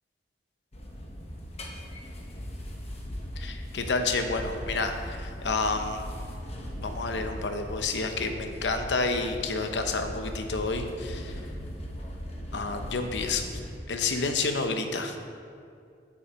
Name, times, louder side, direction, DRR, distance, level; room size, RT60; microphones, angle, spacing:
sound 1, 0.7-13.8, equal, 35° left, 1.1 m, -39 dB
voice 1, 3.4-6.0 6.8-11.3 12.5-13.5 13.9-15.2, left 3 dB, 90° left, 6 dB, 0.8 m, -29 dB
8.2 x 6.5 x 4.6 m, 2.4 s
head